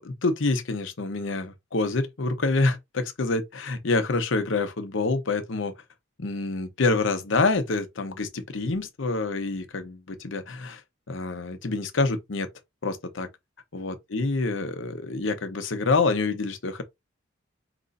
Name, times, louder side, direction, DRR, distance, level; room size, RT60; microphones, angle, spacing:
voice 1, 0.0-5.7 6.2-10.8 11.1-12.5 12.8-13.3 13.7-16.8, left 3 dB, 65° left, 0.8 m, -27 dB
5.0 x 3.0 x 2.5 m
head